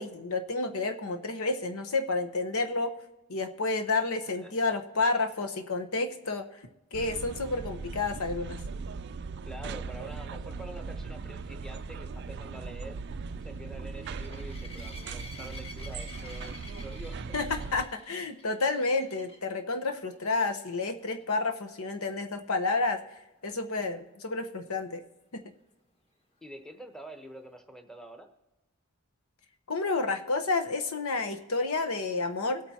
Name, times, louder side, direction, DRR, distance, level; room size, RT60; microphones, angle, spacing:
voice 1, 0.0-2.9 3.3-6.4 6.9-8.6 17.3-23.0 23.4-25.0 25.3-25.4 29.7-32.6, left 3 dB, 80° left, 7 dB, 1.0 m, -30 dB
sound 1, 6.9-17.8, right 4 dB, 50° right, 0.4 m, -39 dB
voice 2, 9.4-13.0 13.4-17.4 26.4-28.3, right 1 dB, ahead, 5 dB, 0.9 m, -46 dB
sound 2, 11.6-19.5 20.1-20.4 20.7-20.8 21.2-21.3 24.9-25.0, left 2 dB, 25° left, 1.5 m, -49 dB
21.5 x 8.7 x 2.9 m, 1.1 s
head